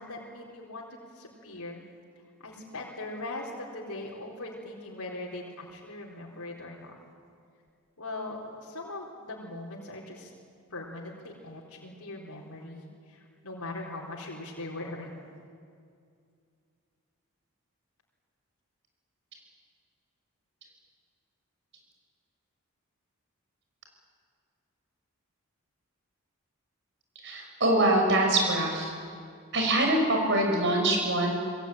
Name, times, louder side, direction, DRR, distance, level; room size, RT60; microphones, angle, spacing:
voice 1, 0.0-1.8 2.4-6.9 8.0-10.3 10.7-15.2, left 2 dB, 85° left, -3 dB, 4.1 m, -40 dB
voice 2, 27.2-28.9 29.5-31.3, right 1 dB, 55° right, 2 dB, 5.9 m, -24 dB
27.0 x 21.5 x 9.2 m, 2.3 s
head